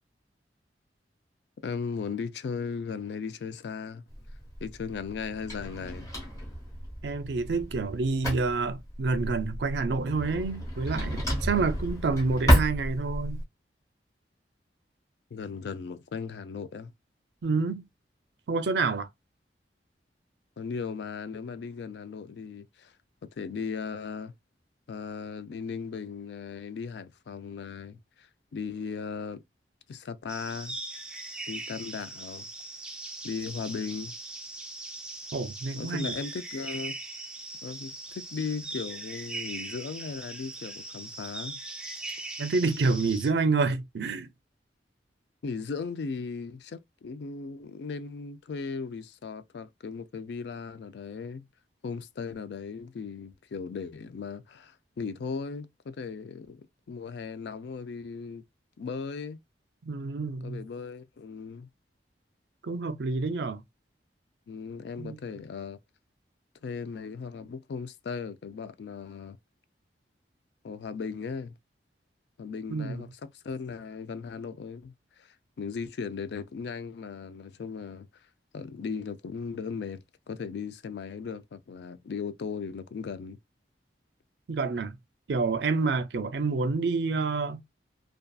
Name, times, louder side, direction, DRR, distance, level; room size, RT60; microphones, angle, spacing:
voice 1, 1.6-4.0 4.6-6.1 15.3-16.9 20.6-22.9 23.4-24.3 24.9-29.4 29.9-30.8 31.5-32.5 33.2-34.1 35.8-37.0 37.6-41.6 45.4-51.5 51.8-58.4 58.8-59.4 60.4-61.7 64.5-65.8 66.6-69.4 70.6-71.5 72.4-78.2 78.5-83.4, left 5 dB, 70° left, 0.3 m, -37 dB
Drawer open or close, 4.1-13.4, equal, 20° left, 0.9 m, -31 dB
voice 2, 7.0-13.4 17.4-17.8 18.5-19.1 35.3-36.1 42.4-44.3 59.9-60.6 62.6-63.6 65.0-65.2 72.7-73.0 84.5-85.0 85.3-87.6, right 4 dB, 70° right, 0.4 m, -28 dB
sound 1, 30.3-43.3, right 2 dB, 5° right, 0.4 m, -40 dB
2.5 x 2.3 x 2.3 m
head